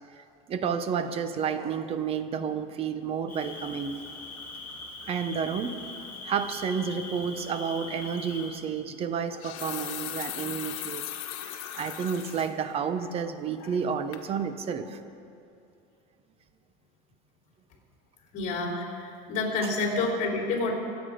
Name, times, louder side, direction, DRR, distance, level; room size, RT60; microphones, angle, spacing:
voice 1, 0.2-4.0 5.1-5.8 6.2-11.0 11.4-15.0 19.6-19.7, right 7 dB, 30° right, 10 dB, 0.8 m, -31 dB
Cricket, 3.3-8.5, left 3 dB, 10° left, 2.8 m, -41 dB
sound 1, 8.0-8.2 9.2-12.5 13.0-13.1 13.6-13.9 14.1-14.3, left 12 dB, 75° left, 1.4 m, -38 dB
voice 2, 18.3-20.7, left 3 dB, 45° left, -1 dB, 3.7 m, -28 dB
24.5 x 8.3 x 5.2 m, 2.6 s
cardioid pair, 150°, 19 cm